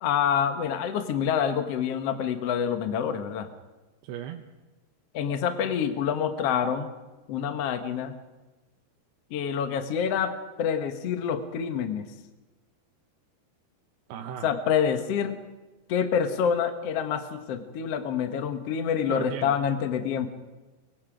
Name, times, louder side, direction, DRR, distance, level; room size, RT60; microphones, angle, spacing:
voice 1, 0.0-3.5 5.1-6.9 7.3-8.2 9.3-12.0 14.4-15.4 15.9-20.3, left 7 dB, 70° left, 8 dB, 1.4 m, -27 dB
voice 2, 4.0-4.5 14.1-14.5 19.1-19.6, right 10 dB, 80° right, 3 dB, 2.9 m, -36 dB
23.5 x 21.5 x 5.1 m, 1.2 s
omnidirectional pair, 4.8 m